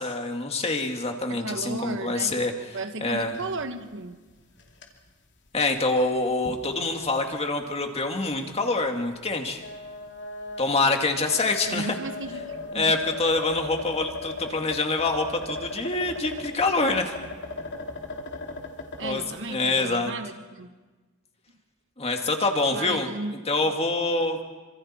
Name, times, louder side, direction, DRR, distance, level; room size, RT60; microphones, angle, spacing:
voice 1, 0.0-2.7 3.0-3.4 5.5-9.6 10.6-12.0 12.7-17.1 19.0-19.2 19.5-20.1 22.0-23.1 23.5-24.4, left 3 dB, 30° left, 4 dB, 2.1 m, -26 dB
voice 2, 1.3-2.5 2.7-4.2 11.7-13.0 19.0-20.7 22.7-23.3, right 2 dB, 60° right, 8 dB, 1.4 m, -34 dB
sound 1, 3.1-3.6 3.9-4.0 4.5-4.9 5.5-5.6 6.4-6.6 7.0-7.1 8.2-8.4 9.5-19.1, left 2 dB, 55° left, 2.8 m, -37 dB
27.5 x 26.0 x 4.4 m, 1.3 s
head